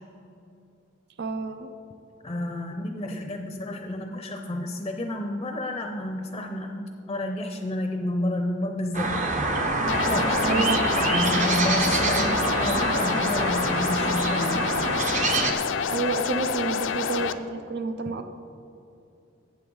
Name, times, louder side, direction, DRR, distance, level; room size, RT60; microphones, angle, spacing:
voice 1, 1.2-1.7 10.4-10.8 15.9-18.3, right 4 dB, 55° right, 8 dB, 0.5 m, -29 dB
voice 2, 2.2-9.2 9.9-10.7 11.0-14.7, left 1 dB, 25° left, 5 dB, 0.5 m, -30 dB
sound 1, 8.9-15.5, right 2 dB, 40° right, 0.9 m, -26 dB
sound 2, 9.9-17.3, left 6 dB, 75° left, 0.4 m, -28 dB
13.0 x 8.5 x 3.8 m, 2.6 s
head